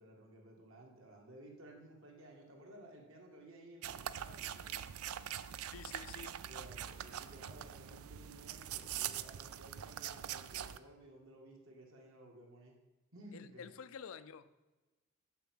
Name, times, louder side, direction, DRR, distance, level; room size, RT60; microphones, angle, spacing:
voice 1, 0.0-4.8 6.4-12.7 13.1-13.7, right 1 dB, 65° right, 0 dB, 2.1 m, -56 dB
sound 1, 3.8-10.8, right 10 dB, 85° right, 0.4 m, -43 dB
voice 2, 5.6-6.4 13.3-14.6, left 6 dB, 70° left, 13 dB, 0.5 m, -50 dB
6.9 x 6.1 x 7.6 m, 1.1 s
head